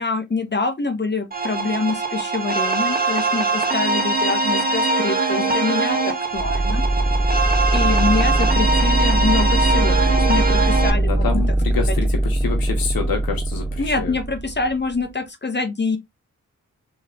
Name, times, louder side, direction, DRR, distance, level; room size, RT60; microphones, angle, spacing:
voice 1, 0.0-6.8 7.7-11.4 13.8-16.0, left 4 dB, 30° left, 1.0 m, -25 dB
sound 1, 1.3-10.9, right 3 dB, 25° right, 1.3 m, -22 dB
sound 2, 6.4-15.1, right 1 dB, 10° right, 0.4 m, -21 dB
voice 2, 11.0-14.2, left 6 dB, 85° left, 1.0 m, -27 dB
3.2 x 3.1 x 3.6 m
cardioid pair, 45°, 34 cm